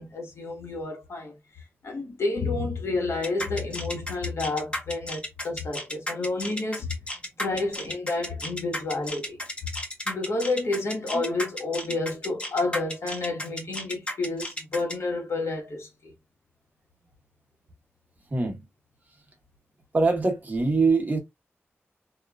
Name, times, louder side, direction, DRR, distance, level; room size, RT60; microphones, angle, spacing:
voice 1, 0.0-1.3 1.8-7.0 7.4-9.4 10.1-16.1, left 3 dB, 75° left, 1.2 m, -30 dB
sound 1, 3.2-14.9, left 1 dB, 25° left, 0.9 m, -33 dB
voice 2, 18.3-18.6 19.9-21.2, right 3 dB, 35° right, 1.0 m, -23 dB
2.9 x 2.4 x 2.2 m
wide cardioid pair, 95°, 5 cm